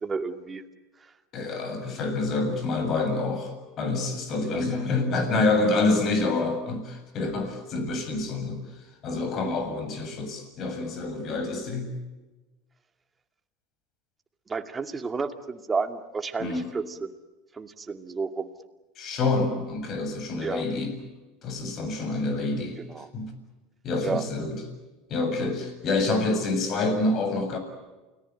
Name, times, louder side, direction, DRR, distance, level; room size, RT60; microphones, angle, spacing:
voice 1, 0.0-0.6 4.4-4.6 14.5-17.1 17.5-18.5 20.4-20.6 22.8-23.1 24.0-24.2, right 4 dB, 20° right, 7 dB, 2.4 m, -31 dB
voice 2, 1.3-8.6 9.0-11.9 16.4-16.8 19.0-20.9 21.4-22.8 23.1-23.3 23.8-24.6 25.1-27.6, left 3 dB, 45° left, 8 dB, 7.5 m, -27 dB
29.0 x 19.0 x 8.9 m, 1.1 s
hypercardioid pair, 95°, 0 cm